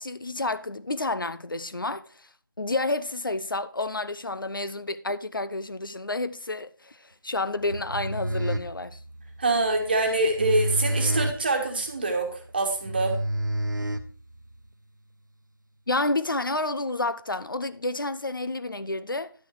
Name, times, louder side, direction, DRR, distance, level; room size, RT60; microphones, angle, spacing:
voice 1, 0.0-2.3 2.6-9.0 15.9-19.3, left 2 dB, 70° left, 0.8 m, -30 dB
sound 1, 7.6-14.6, right 1 dB, 55° right, 1.0 m, -30 dB
voice 2, 9.4-13.1, right 2 dB, 25° right, 1.5 m, -25 dB
11.0 x 6.5 x 4.7 m
figure-of-eight pair, 165°, 12 cm